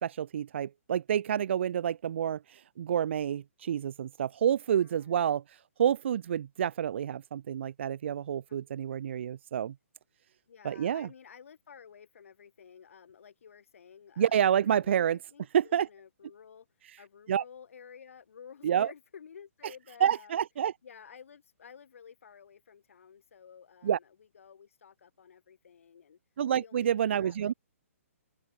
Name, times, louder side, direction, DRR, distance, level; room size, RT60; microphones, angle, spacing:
voice 1, 0.0-9.7 10.6-11.1 14.2-15.2 15.5-15.9 17.3-17.4 18.6-18.9 20.0-20.7 23.8-24.0 26.4-27.5, right 9 dB, 55° right, 0.4 m, -28 dB
voice 2, 4.7-5.2 8.5-8.6 8.9-9.0 10.5-20.4 20.8-26.2 26.5-27.5, left 7 dB, 65° left, 2.0 m, -53 dB
open air
hypercardioid pair, 160°, 8 cm